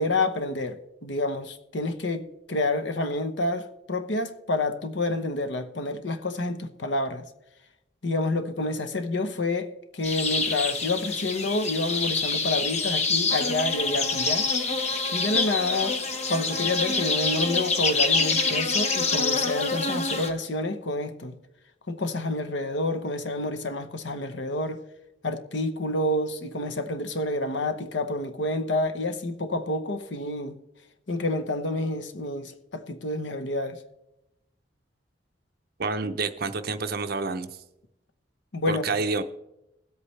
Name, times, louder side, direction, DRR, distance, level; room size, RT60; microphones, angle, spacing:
voice 1, 0.0-7.3 8.0-14.5 15.1-16.0 16.3-21.3 21.9-24.8 25.2-30.5 31.1-33.8 38.5-38.8, left 2 dB, 75° left, 1.0 m, -28 dB
sound 1, 10.0-20.3, left 3 dB, 40° left, 1.0 m, -26 dB
voice 2, 35.8-37.5 38.7-39.2, right 4 dB, 55° right, 0.7 m, -28 dB
20.5 x 8.2 x 3.3 m
head